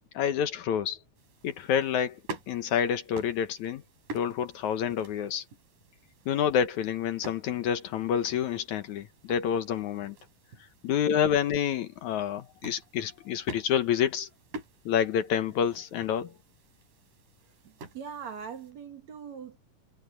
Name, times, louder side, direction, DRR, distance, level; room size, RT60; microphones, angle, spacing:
voice 1, 0.1-1.0 1.4-2.2 2.5-3.8 4.1-5.4 6.3-10.2 10.8-14.3 14.9-16.3, left 8 dB, 70° left, 2.4 m, -28 dB
sound 1, 1.2-18.7, right 3 dB, 85° right, 5.2 m, -48 dB
voice 2, 17.6-19.6, right 7 dB, 60° right, 3.6 m, -41 dB
omnidirectional pair, 3.7 m